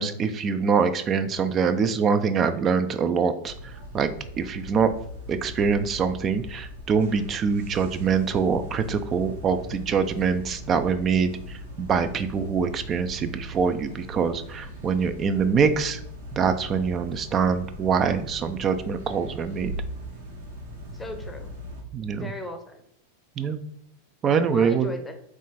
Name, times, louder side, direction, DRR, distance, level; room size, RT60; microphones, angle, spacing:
voice 1, 0.0-4.1 4.4-4.9 5.3-16.0 16.3-19.7 21.9-22.2 23.4-23.6 24.2-24.9, right 6 dB, 25° right, 10 dB, 0.3 m, -24 dB
sound 1, 3.4-21.8, equal, 65° right, 1.1 m, -39 dB
voice 2, 20.9-21.6 22.1-22.8 24.5-25.1, left 1 dB, 10° left, 6 dB, 0.6 m, -37 dB
3.6 x 2.4 x 3.9 m, 0.69 s
figure-of-eight pair, 90°, 0 cm